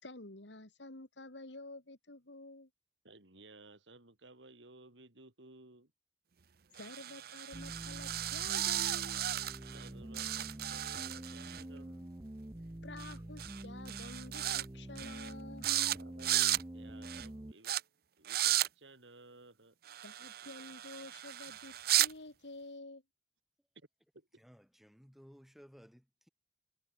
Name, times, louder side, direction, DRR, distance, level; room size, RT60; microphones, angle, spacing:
voice 1, 0.0-2.7 6.7-9.2 12.8-15.9 20.0-23.0, left 2 dB, 80° left, 2.8 m, -50 dB
voice 2, 3.0-5.9 9.7-12.1 15.9-17.8 18.2-19.8 20.4-20.7 23.8-23.9 24.1-24.4, right 2 dB, 90° right, 3.7 m, -57 dB
sound 1, 6.8-9.9 10.1-11.6 13.0-13.1 13.4-13.6 13.9-14.6 15.0-15.3 15.6-16.6 17.0-17.3 17.6-17.8 18.2-18.7 19.9-22.1, right 13 dB, 55° right, 0.7 m, -34 dB
sound 2, 7.5-17.5, right 1 dB, 20° right, 0.6 m, -47 dB
voice 3, 24.4-26.3, equal, ahead, 7.1 m, -58 dB
head